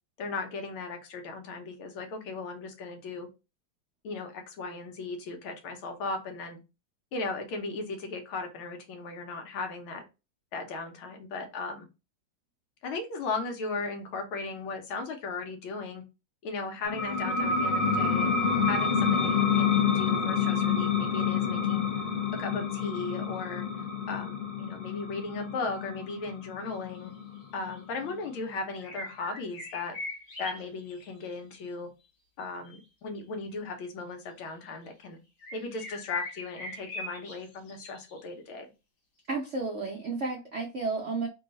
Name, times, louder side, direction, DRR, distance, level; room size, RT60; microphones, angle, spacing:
voice 1, 0.2-3.3 4.0-6.6 7.1-10.0 10.5-11.9 12.8-16.0 16.4-18.3 18.7-21.9 22.4-23.7 24.1-27.1 27.5-30.0 30.4-31.9 32.4-35.2 35.5-38.7, left 3 dB, 90° left, 1.7 m, -37 dB
sound 1, 16.8-28.1, left 6 dB, 50° left, 0.7 m, -28 dB
sound 2, 26.7-26.8 27.5-27.8 28.8-31.3 32.7-32.8 34.4-34.5 35.4-38.2, left 2 dB, 65° left, 1.6 m, -40 dB
voice 2, 39.3-41.3, right 3 dB, 70° right, 0.6 m, -32 dB
3.7 x 2.3 x 3.9 m
omnidirectional pair, 2.2 m